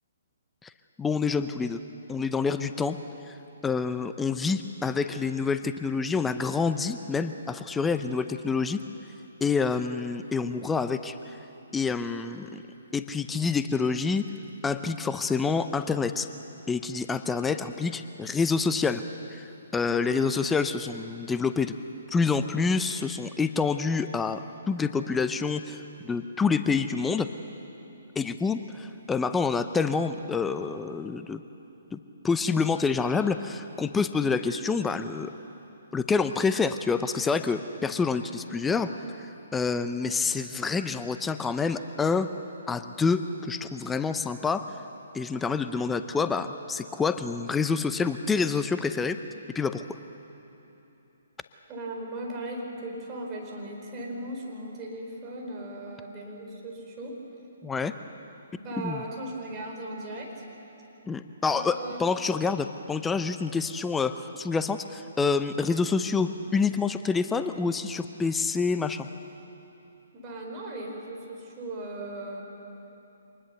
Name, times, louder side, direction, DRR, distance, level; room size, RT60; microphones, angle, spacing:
voice 1, 1.0-1.8 2.1-3.0 3.3-3.4 3.6-8.8 9.4-11.4 11.7-12.5 12.9-14.2 14.6-16.3 16.7-19.0 19.3-21.7 22.1-24.4 24.7-27.3 28.2-31.4 31.9-32.0 32.2-35.3 35.9-38.9 39.5-42.3 42.7-44.7 45.1-49.2 49.5-49.8 57.6-57.9 58.8-59.0 61.1-69.1, left 4 dB, 10° left, 10 dB, 0.7 m, -27 dB
voice 2, 51.7-57.2 58.5-60.4 61.4-62.0 70.1-72.4, right 1 dB, 25° right, 0 dB, 4.5 m, -37 dB
25.5 x 20.0 x 6.9 m, 3.0 s
figure-of-eight pair, 135°, 0 cm